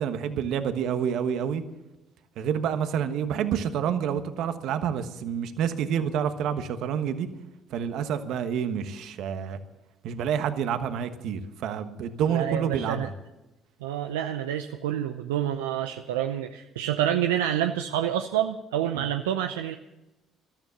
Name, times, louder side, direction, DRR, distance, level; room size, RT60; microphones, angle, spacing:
voice 1, 0.0-1.6 2.4-7.3 7.7-9.6 10.0-13.1 18.9-19.1, right 8 dB, 70° right, 9 dB, 1.2 m, -28 dB
voice 2, 12.3-13.1 13.8-19.8, right 11 dB, 90° right, 6 dB, 0.6 m, -28 dB
13.5 x 12.5 x 7.2 m, 1.0 s
hypercardioid pair, 60°, 0 cm